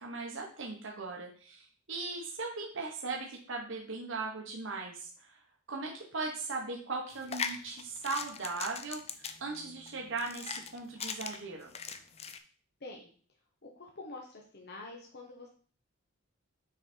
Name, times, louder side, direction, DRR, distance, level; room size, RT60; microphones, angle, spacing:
voice 1, 0.0-5.4 5.7-9.0 9.4-11.7, right 3 dB, 65° right, 0 dB, 1.3 m, -38 dB
sound 1, 7.1-12.4, left 6 dB, 30° left, 0.5 m, -40 dB
voice 2, 13.6-15.5, left 2 dB, 50° left, 0 dB, 1.4 m, -46 dB
6.3 x 4.9 x 4.4 m, 0.42 s
head